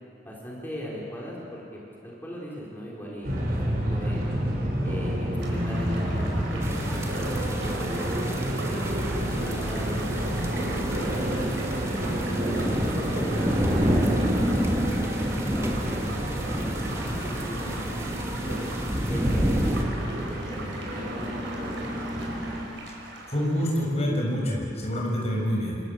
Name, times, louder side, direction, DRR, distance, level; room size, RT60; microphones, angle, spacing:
voice 1, 0.2-4.3 4.8-11.3 11.6-12.1 12.7-16.0 16.5-18.7 19.1-19.9 20.1-20.7 20.9-21.8 22.2-22.3, equal, 10° left, -5 dB, 5.0 m, -39 dB
sound 1, 3.2-22.6, equal, 50° right, 6.0 m, -29 dB
sound 2, 5.4-23.9, right 2 dB, 85° right, 5.8 m, -41 dB
sound 3, 6.6-19.8, equal, 15° right, 2.3 m, -30 dB
voice 2, 23.3-25.8, equal, 35° left, -2 dB, 7.1 m, -26 dB
29.5 x 26.5 x 7.6 m, 2.8 s
head